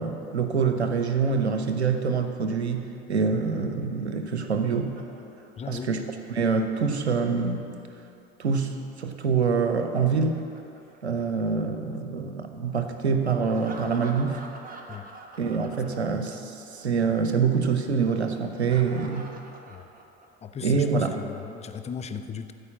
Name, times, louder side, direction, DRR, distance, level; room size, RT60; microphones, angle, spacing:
voice 1, 0.0-4.9 5.7-6.0 6.3-7.6 8.4-10.5 11.0-14.4 15.4-19.3 20.6-21.2, right 5 dB, 90° right, 7 dB, 0.7 m, -25 dB
Laughter, 3.8-7.9 9.5-11.7 13.4-16.5 16.7-16.9 18.4-20.5, right 3 dB, 25° right, 1.4 m, -47 dB
voice 2, 5.6-5.9 14.9-15.1 15.9-16.0 19.7-19.9 20.4-22.5, left 6 dB, 20° left, 9 dB, 0.6 m, -37 dB
13.5 x 5.0 x 7.3 m, 2.7 s
figure-of-eight pair, 65°, 32 cm